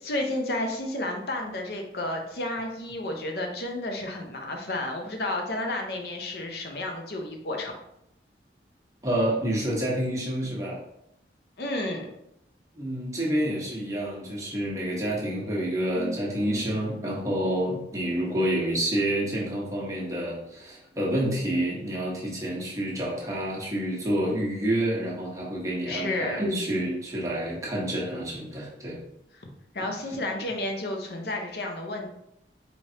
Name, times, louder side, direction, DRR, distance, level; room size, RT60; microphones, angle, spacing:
voice 1, 0.0-7.8 11.6-12.1 25.9-26.4 29.4-29.5 29.7-32.1, left 1 dB, 60° left, 2 dB, 0.6 m, -31 dB
voice 2, 9.0-10.8 12.7-29.0 29.8-29.9, right 1 dB, 20° right, -5 dB, 0.9 m, -28 dB
4.1 x 3.2 x 2.7 m, 0.80 s
head